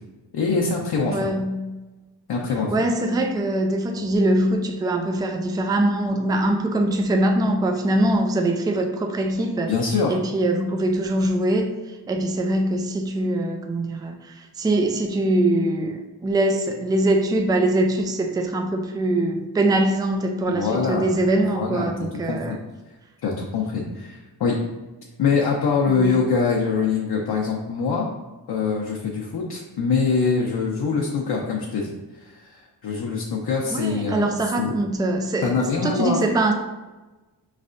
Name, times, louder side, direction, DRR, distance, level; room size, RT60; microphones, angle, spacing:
voice 1, 0.3-1.2 2.3-2.7 9.7-10.1 20.5-21.1 21.5-21.9 22.3-22.4 23.2-24.6 25.2-28.1 28.5-34.3 34.6-34.7 35.4-36.2, left 5 dB, 60° left, -2 dB, 0.8 m, -24 dB
voice 2, 1.1-1.8 2.7-9.7 10.1-11.7 12.1-22.6 25.9-26.2 33.7-36.5, right 1 dB, 10° right, 4 dB, 0.3 m, -23 dB
5.3 x 3.3 x 2.5 m, 1.1 s
cardioid pair, 100°, 43 cm